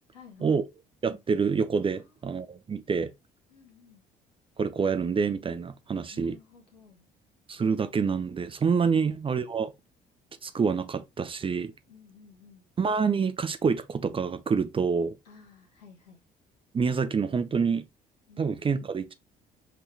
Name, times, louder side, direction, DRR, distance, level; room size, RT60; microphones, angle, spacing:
voice 1, 0.1-0.6 2.0-2.3 3.5-4.0 6.1-7.0 11.9-12.6 15.2-16.2 18.3-18.5, left 6 dB, 80° left, 1.5 m, -54 dB
voice 2, 1.0-3.1 4.6-6.4 7.5-9.7 10.4-11.7 12.8-15.2 16.7-17.8 18.4-19.1, right 5 dB, 25° right, 0.6 m, -27 dB
5.3 x 2.9 x 3.2 m
figure-of-eight pair, 50°, 20 cm